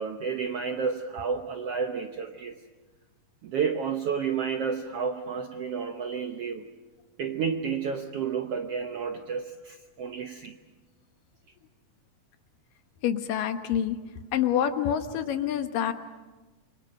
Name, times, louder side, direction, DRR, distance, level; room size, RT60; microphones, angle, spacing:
voice 1, 0.0-2.6 3.4-6.7 7.2-10.6, right 6 dB, 70° right, 6 dB, 1.4 m, -31 dB
voice 2, 13.0-14.0 14.3-15.9, left 9 dB, 80° left, 8 dB, 2.9 m, -27 dB
27.5 x 24.5 x 6.6 m, 1.2 s
omnidirectional pair, 3.9 m